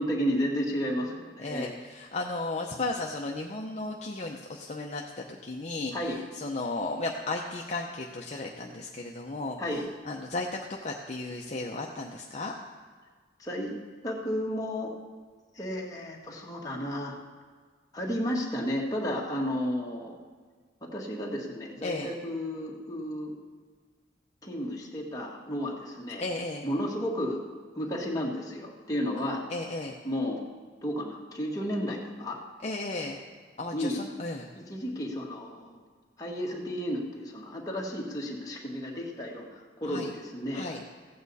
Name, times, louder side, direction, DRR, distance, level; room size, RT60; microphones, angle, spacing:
voice 1, 0.0-1.7 5.9-6.2 9.6-9.9 13.4-13.8 14.0-14.9 15.5-17.2 17.9-20.1 20.8-23.3 24.4-26.2 26.6-27.4 27.7-29.4 30.0-30.4 30.8-32.4 33.7-34.0 34.6-35.8 36.2-40.7, equal, 20° left, -2 dB, 1.6 m, -32 dB
voice 2, 1.4-5.9 6.4-9.6 10.1-10.5 10.8-12.5 21.8-22.1 26.2-26.6 29.5-30.0 32.6-33.2 33.6-34.5 39.9-40.1 40.5-40.8, left 2 dB, 40° left, 0 dB, 0.7 m, -34 dB
15.5 x 8.6 x 4.1 m, 1.5 s
head